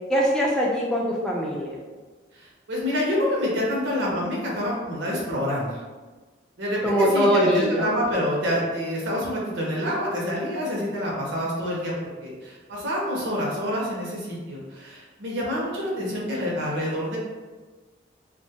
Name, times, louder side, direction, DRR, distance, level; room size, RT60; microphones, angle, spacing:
voice 1, 0.1-1.8 6.8-7.9, equal, 5° left, -4 dB, 0.3 m, -22 dB
voice 2, 2.3-5.8 6.6-17.2, equal, 70° right, -3 dB, 0.6 m, -27 dB
2.2 x 2.1 x 2.7 m, 1.3 s
head